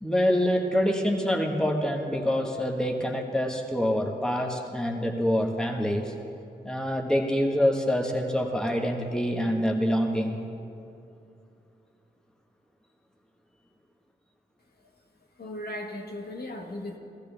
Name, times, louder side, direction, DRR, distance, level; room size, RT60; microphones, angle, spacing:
voice 1, 0.0-6.1 6.6-10.4, equal, 5° left, 1 dB, 1.5 m, -26 dB
voice 2, 15.4-17.0, left 1 dB, 55° left, 1 dB, 1.5 m, -37 dB
15.5 x 13.5 x 3.5 m, 2.7 s
cardioid pair, 40°, 19 cm